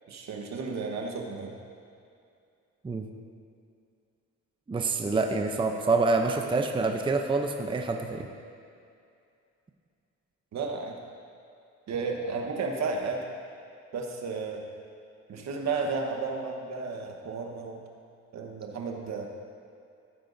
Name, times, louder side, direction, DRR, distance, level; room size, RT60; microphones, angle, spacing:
voice 1, 0.1-1.5 10.5-10.9 11.9-13.3 13.9-14.6 15.3-17.8 18.3-19.3, right 4 dB, 65° right, 2 dB, 1.3 m, -33 dB
voice 2, 4.7-8.3, right 3 dB, 15° right, 3 dB, 0.7 m, -26 dB
14.5 x 8.9 x 2.7 m, 2.5 s
cardioid pair, 90°, 30 cm